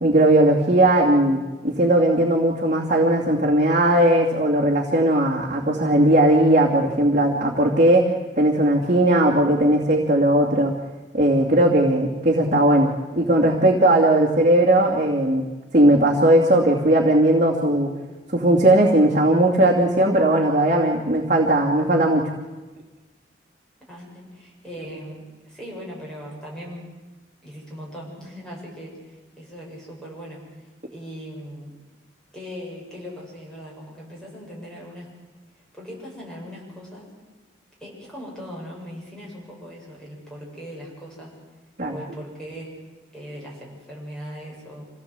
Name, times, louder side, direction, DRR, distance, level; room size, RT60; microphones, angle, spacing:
voice 1, 0.0-10.7 11.1-15.5 15.7-17.9 18.3-22.3 41.8-42.0, right 1 dB, 45° right, -3 dB, 2.6 m, -18 dB
voice 2, 23.9-26.9 27.4-30.4 30.9-31.7 32.3-35.1 35.7-37.1 37.8-41.3 41.9-42.7 43.1-44.8, equal, 5° left, -4 dB, 7.5 m, -39 dB
26.5 x 17.5 x 8.2 m, 1.2 s
head